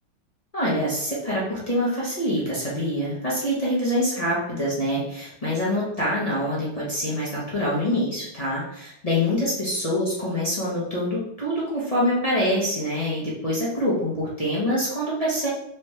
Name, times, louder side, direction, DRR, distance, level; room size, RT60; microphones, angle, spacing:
voice 1, 0.5-15.5, equal, 30° left, -7 dB, 0.7 m, -25 dB
4.5 x 3.1 x 3.2 m, 0.75 s
omnidirectional pair, 2.3 m